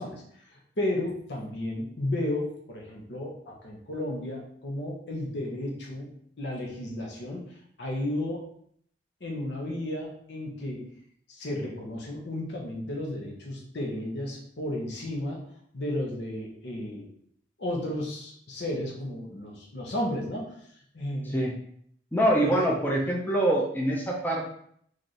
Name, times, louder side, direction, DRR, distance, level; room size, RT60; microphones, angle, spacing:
voice 1, 0.0-8.4 9.2-10.9 11.3-15.5 15.7-17.1 17.6-20.5 20.9-21.4 22.4-22.6, left 1 dB, 65° left, 0 dB, 0.9 m, -33 dB
voice 2, 22.1-24.5, right 1 dB, 10° left, -2 dB, 0.5 m, -25 dB
3.2 x 2.5 x 4.1 m, 0.66 s
head